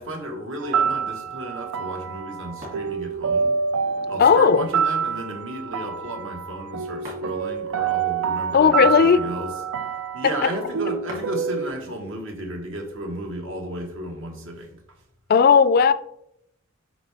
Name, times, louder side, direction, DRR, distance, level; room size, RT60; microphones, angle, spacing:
voice 1, 0.0-3.5 4.1-9.5 10.1-14.8, right 1 dB, 65° right, 1.4 m, -33 dB
sound 1, 0.6-11.7, right 6 dB, 90° right, 0.4 m, -27 dB
sound 2, 2.6-2.8 3.5-4.8 7.0-7.3 7.7-9.5 11.1-11.3 12.0-12.3, equal, 40° right, 2.3 m, -43 dB
voice 2, 4.2-4.7 8.5-9.2 15.3-15.9, left 6 dB, 45° left, 0.3 m, -15 dB
7.9 x 5.5 x 3.4 m
head